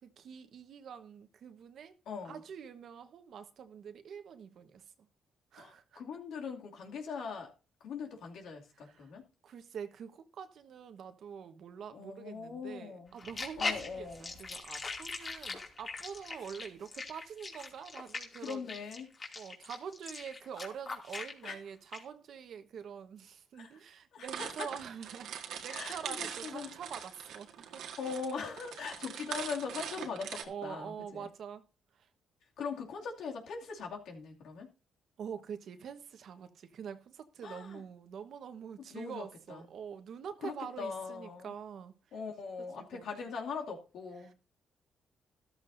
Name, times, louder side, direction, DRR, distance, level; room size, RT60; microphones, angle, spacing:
voice 1, 0.0-2.0 2.2-5.1 5.5-6.0 8.8-9.1 9.4-18.6 19.3-25.3 25.6-27.9 30.4-31.6 31.9-32.1 35.2-42.2 42.8-43.1 44.2-44.3, right 7 dB, 65° right, 1.3 m, -45 dB
voice 2, 2.1-2.4 5.6-7.5 7.8-9.2 11.9-13.2 13.6-14.3 14.8-14.9 18.4-19.1 21.4-21.5 23.6-23.8 24.1-24.7 25.7-26.7 28.0-31.3 32.6-34.7 37.4-37.8 38.9-39.6 40.4-41.5 42.1-44.3, left 5 dB, 75° left, 2.6 m, -41 dB
sound 1, 13.2-21.5 21.9-22.0, left 3 dB, 40° left, 2.6 m, -40 dB
sound 2, 24.3-30.4, right 8 dB, 80° right, 1.7 m, -42 dB
13.5 x 13.0 x 2.7 m
cardioid pair, 90°, 0 cm